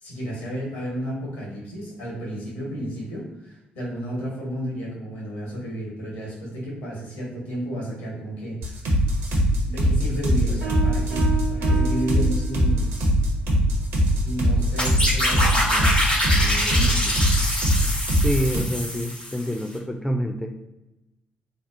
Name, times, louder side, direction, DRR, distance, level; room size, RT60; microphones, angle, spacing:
voice 1, 0.0-8.8 9.7-12.9 14.2-17.1, equal, 70° left, -3 dB, 1.0 m, -32 dB
sound 1, 8.6-18.6, equal, 65° right, 0.6 m, -21 dB
sound 2, 10.6-13.0, right 8 dB, 85° right, 0.9 m, -31 dB
sound 3, 14.8-19.6, left 1 dB, 90° left, 0.7 m, -25 dB
voice 2, 18.2-20.6, equal, 5° left, 4 dB, 0.3 m, -27 dB
2.8 x 2.0 x 2.4 m, 0.96 s
figure-of-eight pair, 40°, 5 cm